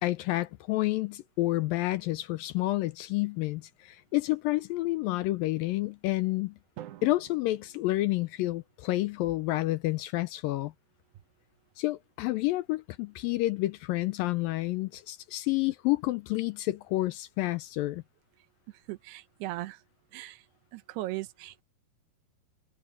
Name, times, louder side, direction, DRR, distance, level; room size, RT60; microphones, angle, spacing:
voice 1, 0.0-6.6 7.0-10.7 11.8-18.0, left 18 dB, 80° left, 2.1 m, -29 dB
Drum, 6.8-8.9, right 13 dB, 65° right, 2.0 m, -49 dB
voice 2, 18.9-19.8 20.1-20.4 20.7-21.6, right 17 dB, 85° right, 2.9 m, -38 dB
omnidirectional pair, 4.6 m